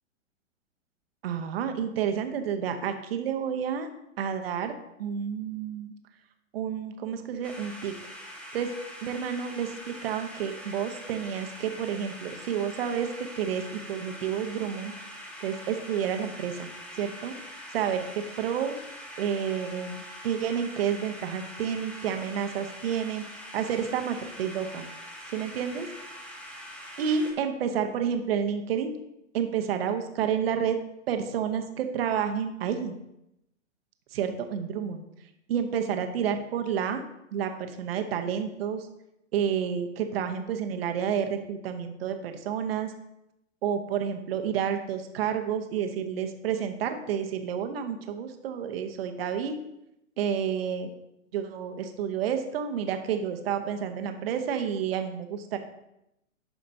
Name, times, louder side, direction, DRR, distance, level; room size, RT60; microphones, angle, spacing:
voice 1, 1.2-3.9 4.2-5.9 6.5-7.9 8.5-8.7 9.0-15.1 15.4-18.8 19.2-23.2 23.5-24.9 25.3-25.9 27.0-28.9 29.3-30.8 31.1-33.0 34.1-35.0 35.5-37.0 37.3-38.9 39.3-42.9 43.6-49.6 50.2-50.9 51.3-55.6, right 8 dB, 50° right, 7 dB, 0.9 m, -30 dB
sound 1, 7.4-27.3, equal, 5° left, 0.9 m, -43 dB
11.5 x 5.0 x 2.7 m, 0.85 s
figure-of-eight pair, 115°, 38 cm